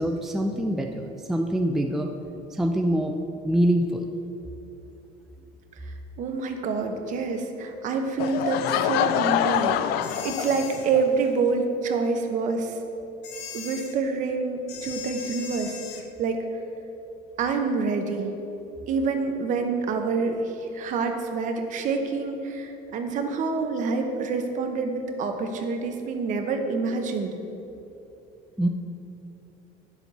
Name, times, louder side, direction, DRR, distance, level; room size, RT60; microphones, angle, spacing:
voice 1, 0.0-2.1 2.5-3.1 3.4-4.1 28.6-28.7, right 1 dB, ahead, 3 dB, 0.4 m, -24 dB
voice 2, 5.9-12.8 13.5-15.8 16.2-16.4 17.4-18.3 18.9-27.4, right 4 dB, 50° right, 5 dB, 0.9 m, -27 dB
Laughter / Crowd, 8.2-11.0, left 11 dB, 65° left, 0.4 m, -25 dB
sound 1, 10.0-10.9 13.2-14.0 14.7-16.1, left 7 dB, 90° left, 0.9 m, -39 dB
10.5 x 7.1 x 4.1 m, 2.9 s
cardioid pair, 150°, 17 cm